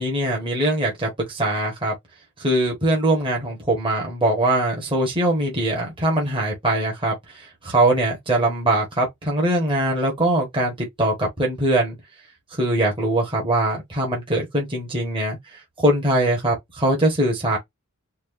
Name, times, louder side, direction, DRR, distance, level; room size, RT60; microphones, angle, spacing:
voice 1, 0.0-1.9 2.4-12.0 12.5-15.4 15.8-17.6, right 1 dB, 25° right, 1.5 m, -22 dB
4.6 x 2.6 x 2.7 m
head